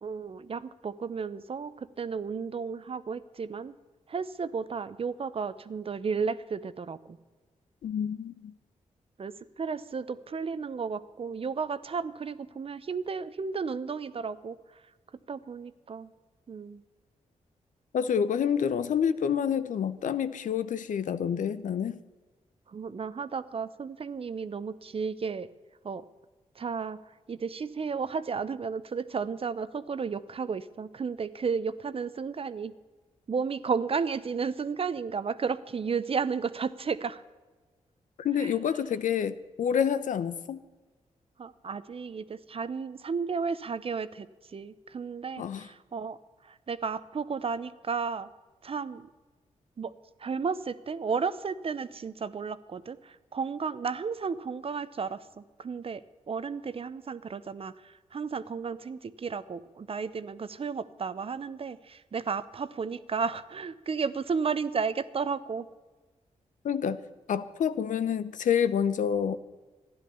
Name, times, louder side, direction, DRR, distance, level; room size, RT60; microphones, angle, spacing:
voice 1, 0.0-3.8 4.1-7.2 9.2-14.8 15.3-16.1 16.5-16.8 22.7-25.5 25.8-26.1 26.6-27.0 27.3-32.7 33.3-37.2 38.4-38.5 41.4-46.2 46.4-48.3 48.6-49.1 49.8-49.9 50.2-65.7, right 5 dB, 45° right, 14 dB, 0.8 m, -33 dB
voice 2, 7.8-8.5 17.9-22.0 38.2-40.6 45.4-45.7 66.6-67.0 67.3-69.4, left 8 dB, 80° left, 14 dB, 0.8 m, -28 dB
13.0 x 10.5 x 6.9 m, 1.3 s
cardioid pair, 80°, 13 cm